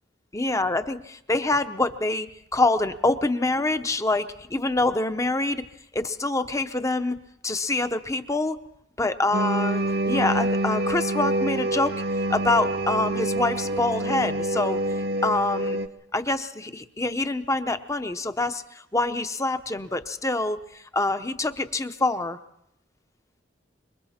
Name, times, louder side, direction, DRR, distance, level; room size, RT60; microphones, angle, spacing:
voice 1, 0.3-5.6 5.9-7.2 7.4-8.6 9.0-12.0 12.3-14.8 15.2-15.8 16.1-22.4, left 2 dB, 15° left, 10 dB, 0.8 m, -26 dB
sound 1, 9.3-15.9, right 1 dB, 60° right, 1.0 m, -26 dB
26.5 x 23.0 x 4.3 m, 0.77 s
head